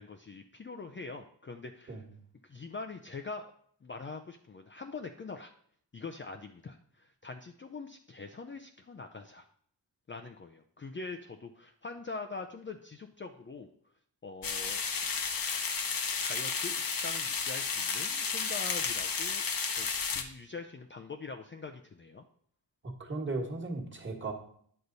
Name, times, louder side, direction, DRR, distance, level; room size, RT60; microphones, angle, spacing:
voice 1, 0.0-2.0 2.4-3.5 3.8-5.5 5.9-9.5 10.1-13.7 14.2-15.2 16.1-19.5 19.8-22.2, left 4 dB, 30° left, 4 dB, 0.5 m, -43 dB
sound 1, 14.4-20.2, left 5 dB, 55° left, 0.9 m, -32 dB
voice 2, 22.8-24.3, right 3 dB, 25° right, 0 dB, 1.5 m, -36 dB
9.7 x 6.6 x 4.0 m, 0.62 s
wide cardioid pair, 115°, 42 cm